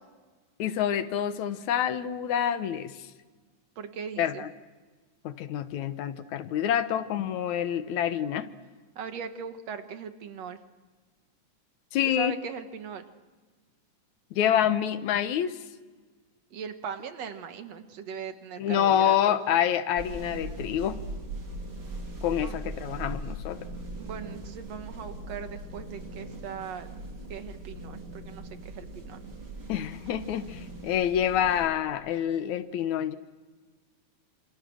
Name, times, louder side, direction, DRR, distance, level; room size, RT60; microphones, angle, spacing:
voice 1, 0.6-3.0 4.2-4.5 5.2-8.5 11.9-12.3 14.3-15.6 18.6-21.0 22.2-23.7 29.7-33.2, left 10 dB, 70° left, 12 dB, 2.3 m, -27 dB
voice 2, 3.8-4.4 9.0-10.6 12.2-13.0 16.5-19.4 22.4-22.5 24.0-26.9 27.3-29.2, right 7 dB, 60° right, 8 dB, 2.6 m, -39 dB
sound 1, 20.0-31.7, right 2 dB, 35° right, 3.8 m, -40 dB
28.5 x 27.5 x 6.4 m, 1.4 s
omnidirectional pair, 3.5 m